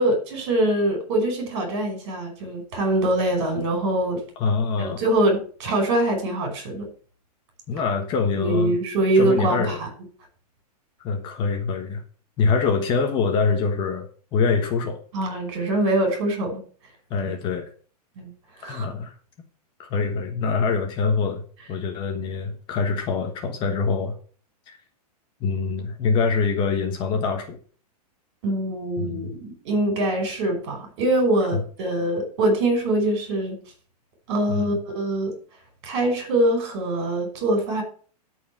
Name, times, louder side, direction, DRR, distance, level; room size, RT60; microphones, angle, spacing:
voice 1, 0.0-4.2 4.8-6.9 8.4-9.7 15.1-16.6 17.2-17.3 18.2-18.3 18.6-18.9 28.4-33.6 34.3-35.3 35.8-37.8, right 1 dB, 45° right, 4 dB, 5.4 m, -23 dB
voice 2, 4.4-5.0 7.7-8.8 9.1-9.8 11.0-12.0 12.4-14.1 14.3-15.0 17.1-17.7 18.7-19.2 19.8-21.4 21.7-24.1 24.7-24.8 25.4-27.6 29.0-29.3 31.4-31.6 34.5-34.7, left 5 dB, 25° left, 5 dB, 1.2 m, -24 dB
13.0 x 4.8 x 7.3 m, 0.42 s
hypercardioid pair, 160°, 20 cm